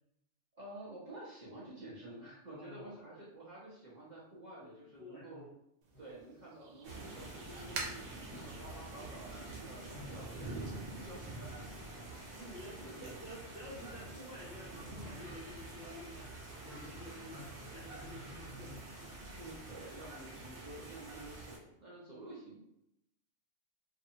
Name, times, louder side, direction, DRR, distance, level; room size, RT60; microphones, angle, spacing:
voice 1, 0.5-5.5 6.0-11.6 11.9-12.0 12.5-13.1 19.3-22.6, right 1 dB, 45° right, -7 dB, 0.6 m, -50 dB
voice 2, 2.5-3.0 5.0-5.5 5.9-6.0 8.3-8.6 11.3-11.5 12.3-18.9 20.3-20.5, left 1 dB, 55° left, -6 dB, 0.4 m, -51 dB
sound 1, 5.8-11.0, right 3 dB, 90° right, 1.1 m, -49 dB
sound 2, 6.8-21.6, right 2 dB, 65° right, 1.1 m, -47 dB
2.6 x 2.5 x 2.7 m, 0.80 s
omnidirectional pair, 1.4 m